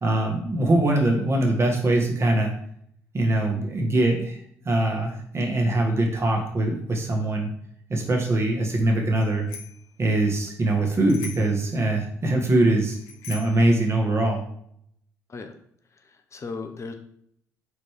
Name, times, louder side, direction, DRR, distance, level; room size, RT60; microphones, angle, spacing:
voice 1, 0.0-2.5 3.1-7.5 7.9-9.5 10.0-13.0 13.3-14.4, right 2 dB, 30° right, 1 dB, 1.9 m, -22 dB
Bicycle bell, 9.2-9.9 11.1-11.6 12.9-13.7, left 7 dB, 75° left, 0.7 m, -41 dB
voice 2, 15.9-16.9, left 4 dB, 35° left, 6 dB, 0.8 m, -37 dB
4.8 x 4.0 x 5.0 m, 0.68 s
hypercardioid pair, 50°, 8 cm